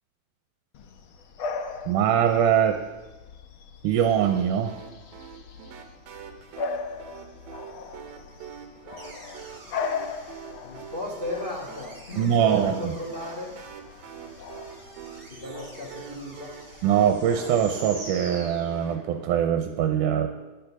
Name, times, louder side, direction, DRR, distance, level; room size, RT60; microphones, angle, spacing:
Bark / Bird vocalization bird call bird song, 0.7-18.3, left 5 dB, 85° left, 1.1 m, -39 dB
voice 1, 1.9-2.8 3.8-4.7 12.2-12.9 16.8-20.4, right 9 dB, 85° right, 6 dB, 2.2 m, -22 dB
sound 1, 4.2-19.0, right 8 dB, 70° right, 2.2 m, -45 dB
sound 2, 9.0-19.3, right 2 dB, 15° right, 3.2 m, -47 dB
voice 2, 10.6-13.6 15.3-16.5, left 1 dB, 50° left, -2 dB, 0.6 m, -35 dB
10.5 x 10.5 x 6.1 m, 1.1 s
omnidirectional pair, 3.6 m